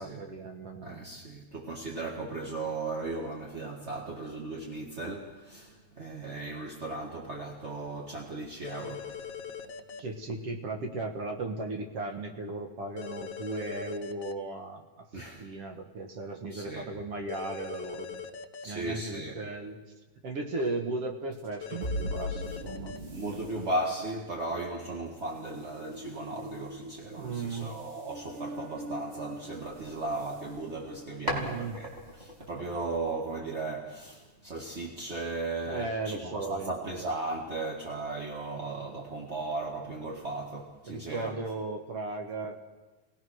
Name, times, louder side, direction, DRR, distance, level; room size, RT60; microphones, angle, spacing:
voice 1, 0.0-1.0 10.0-18.2 18.6-19.8 20.2-22.9 27.2-27.7 31.2-31.8 35.7-36.8 40.9-42.6, right 2 dB, 55° right, 4 dB, 2.3 m, -36 dB
voice 2, 0.8-9.2 15.1-15.4 16.5-16.9 18.6-19.4 22.8-31.9 32.2-41.3, right 2 dB, 30° right, -1 dB, 1.5 m, -36 dB
sound 1, 8.6-10.0 13.0-14.3 17.3-18.6 21.6-23.0, left 7 dB, 60° left, 1.3 m, -41 dB
sound 2, 21.3-31.8, equal, 80° right, 4.4 m, -41 dB
sound 3, 29.6-31.0 31.3-33.9, equal, 15° right, 3.9 m, -40 dB
25.5 x 18.0 x 6.3 m, 1.2 s
omnidirectional pair, 3.4 m